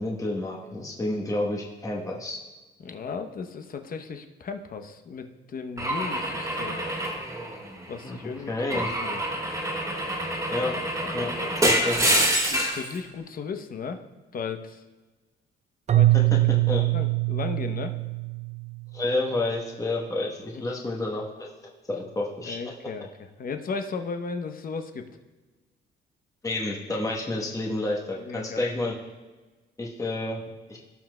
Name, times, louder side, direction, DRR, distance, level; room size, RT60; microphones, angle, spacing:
voice 1, 0.0-2.4 8.0-8.2 8.5-8.9 10.5-10.7 11.1-11.3 11.6-12.0 16.1-16.8 18.9-21.5 21.9-22.6 26.4-29.0 29.8-30.4 30.7-30.8, left 2 dB, 15° left, -1 dB, 1.0 m, -29 dB
voice 2, 2.8-6.8 7.9-9.2 11.0-11.7 12.5-14.0 14.3-14.8 15.9-17.9 20.5-20.6 22.5-25.1 28.1-28.9, left 5 dB, 45° left, 7 dB, 0.8 m, -36 dB
Car / Engine / Glass, 5.8-8.0 8.7-12.9, right 1 dB, 15° right, 2.0 m, -26 dB
Keyboard (musical), 15.9-19.0, right 17 dB, 35° right, 0.4 m, -23 dB
17.0 x 5.8 x 2.2 m, 1.3 s
cardioid pair, 90°, 20 cm